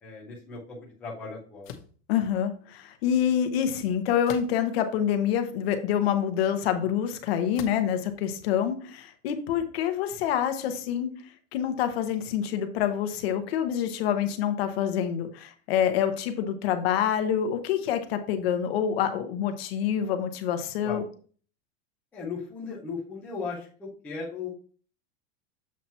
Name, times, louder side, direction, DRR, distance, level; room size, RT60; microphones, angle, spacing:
voice 1, 0.0-1.7 20.8-21.0 22.1-24.5, left 4 dB, 5° left, -6 dB, 0.4 m, -37 dB
sound 1, 1.6-2.0 4.2-4.8 5.5-5.6 7.5-7.9, left 9 dB, 85° left, 1.1 m, -41 dB
voice 2, 2.1-11.1 11.5-21.0, left 9 dB, 50° left, 8 dB, 1.0 m, -27 dB
7.4 x 2.9 x 5.4 m, 0.43 s
supercardioid pair, 175°, 39 cm